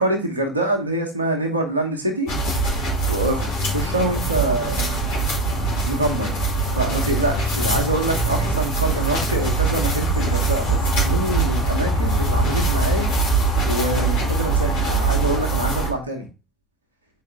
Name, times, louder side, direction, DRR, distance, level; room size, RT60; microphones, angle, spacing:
voice 1, 0.0-2.3 3.1-3.5 3.7-5.0 5.9-6.3 6.7-13.1 13.7-16.3, right 1 dB, 85° right, 4 dB, 1.1 m, -25 dB
sound 1, 2.3-15.9, right 2 dB, 70° left, 2.5 m, -22 dB
6.7 x 5.0 x 3.4 m, 0.28 s
figure-of-eight pair, 55°, 0 cm